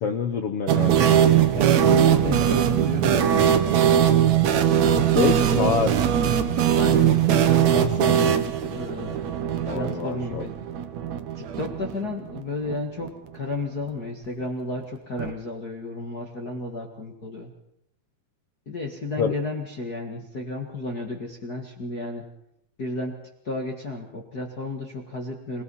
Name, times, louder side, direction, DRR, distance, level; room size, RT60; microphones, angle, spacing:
voice 1, 0.0-1.2 5.1-5.9 9.7-10.5 19.2-19.3, left 6 dB, 90° left, 8 dB, 1.3 m, -26 dB
sound 1, 0.7-12.4 12.7-12.8 13.0-13.1 15.2-15.3, right 9 dB, 60° right, 2.1 m, -21 dB
voice 2, 1.5-4.4 4.9-5.8 6.7-9.4 9.7-10.5 11.3-17.5 18.6-22.2 22.8-23.2 23.4-25.6, left 2 dB, 35° left, 0 dB, 1.7 m, -33 dB
27.5 x 18.0 x 5.6 m, 0.79 s
omnidirectional pair, 4.2 m